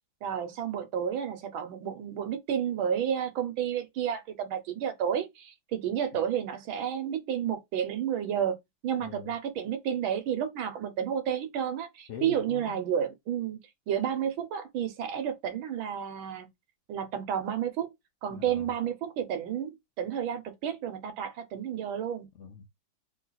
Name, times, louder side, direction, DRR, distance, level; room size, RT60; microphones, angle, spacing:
voice 1, 0.2-8.6 8.8-13.6 13.9-16.5 16.9-17.9 18.2-22.3, right 9 dB, 80° right, 1.6 m, -31 dB
voice 2, 12.1-12.8 18.3-18.7 22.4-22.7, left 7 dB, 85° left, 0.6 m, -42 dB
3.4 x 3.0 x 4.0 m
omnidirectional pair, 2.2 m